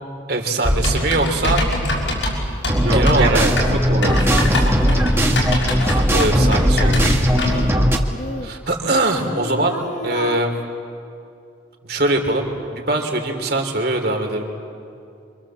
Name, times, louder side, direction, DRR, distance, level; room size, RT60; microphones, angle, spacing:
voice 1, 0.3-1.7 2.9-3.4 4.1-4.2 5.8-7.2 8.4-9.8 10.0-10.5 11.8-14.5, right 2 dB, 55° right, 3 dB, 3.2 m, -22 dB
Typing, 0.6-7.7, left 1 dB, 80° left, 6.3 m, -23 dB
sound 1, 2.7-8.0, equal, 15° right, 1.6 m, -18 dB
voice 2, 2.8-4.7 7.2-7.5, right 2 dB, 85° right, -7 dB, 4.0 m, -25 dB
Singing, 4.5-7.7 8.1-10.4, left 2 dB, 40° left, 1.3 m, -33 dB
27.5 x 25.0 x 7.5 m, 2.5 s
head